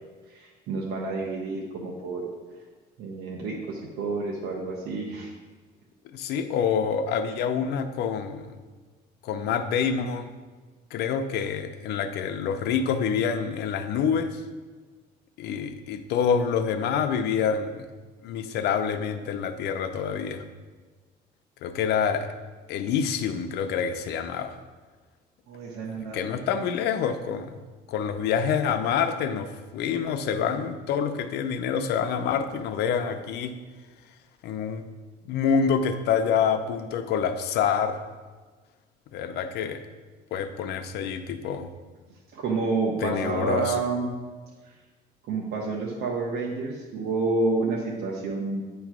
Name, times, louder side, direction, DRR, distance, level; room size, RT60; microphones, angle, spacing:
voice 1, 0.3-2.2 3.0-5.3 25.5-26.4 42.3-44.1 44.6-44.7 45.3-48.6, right 3 dB, 70° right, -2 dB, 1.1 m, -29 dB
voice 2, 6.1-8.6 9.2-10.3 10.9-14.4 15.4-17.9 18.2-20.4 21.6-22.4 22.7-24.6 25.9-27.6 27.9-33.5 34.4-34.9 35.2-38.0 39.1-39.8 40.3-41.7 43.0-43.8, left 7 dB, 75° left, 8 dB, 0.6 m, -27 dB
9.1 x 3.1 x 6.0 m, 1.4 s
cardioid pair, 110°, 17 cm